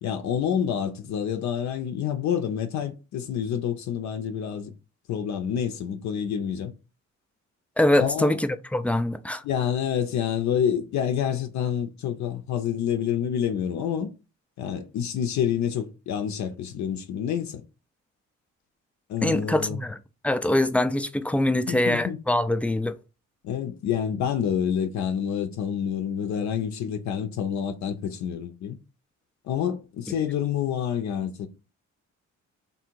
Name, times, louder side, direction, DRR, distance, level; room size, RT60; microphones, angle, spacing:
voice 1, 0.0-4.7 5.1-6.7 8.0-8.4 9.4-14.1 14.6-17.6 19.1-19.8 21.7-22.2 23.4-28.8 29.4-31.5, left 8 dB, 65° left, 0.5 m, -28 dB
voice 2, 7.8-9.4 19.2-20.0 20.2-22.9, left 1 dB, 5° left, 0.3 m, -23 dB
3.4 x 2.5 x 4.5 m
cardioid pair, 90°, 30 cm